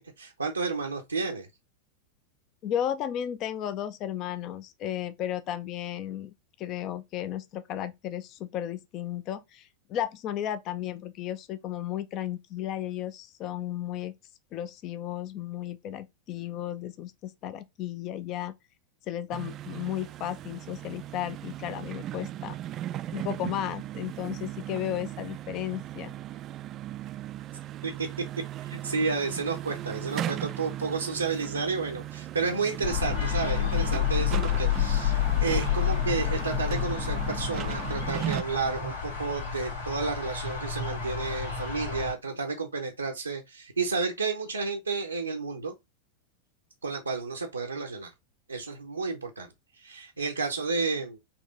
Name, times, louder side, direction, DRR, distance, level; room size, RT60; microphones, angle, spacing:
voice 1, 0.2-1.5 27.8-28.1 28.6-45.7 46.8-48.1 48.5-49.5 49.8-51.2, right 4 dB, 80° right, 0.7 m, -31 dB
voice 2, 2.6-14.1 14.5-18.5 19.1-22.6 23.1-26.1, left 11 dB, 35° left, 0.4 m, -34 dB
sound 1, 19.3-38.4, right 13 dB, 30° right, 0.3 m, -37 dB
sound 2, 32.8-42.1, left 10 dB, 70° left, 1.9 m, -29 dB
4.3 x 3.0 x 3.9 m
figure-of-eight pair, 90°, 0 cm